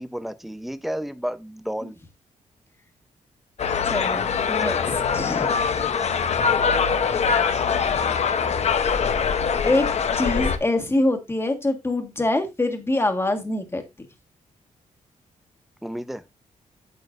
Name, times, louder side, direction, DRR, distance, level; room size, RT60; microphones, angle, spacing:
voice 1, 0.0-2.0 4.6-4.9 5.8-6.1 15.8-16.2, equal, ahead, 0.7 m, -32 dB
sound 1, 3.6-10.6, left 6 dB, 55° left, 0.9 m, -23 dB
voice 2, 3.8-5.5 9.6-9.9 10.2-13.8, left 2 dB, 20° left, 1.6 m, -24 dB
9.5 x 7.9 x 2.6 m
cardioid pair, 110°, 13 cm